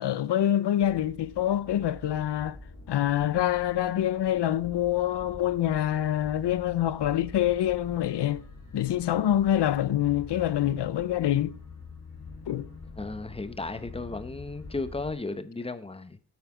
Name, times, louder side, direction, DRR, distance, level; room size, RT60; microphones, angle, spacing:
voice 1, 0.0-2.6 2.9-8.4 8.7-11.6 12.5-12.7, left 12 dB, 90° left, 0.6 m, -26 dB
sound 1, 0.8-15.1, left 3 dB, 55° left, 4.3 m, -46 dB
voice 2, 13.0-16.2, left 3 dB, 15° left, 0.9 m, -35 dB
9.3 x 9.1 x 4.9 m
wide cardioid pair, 125°, 40 cm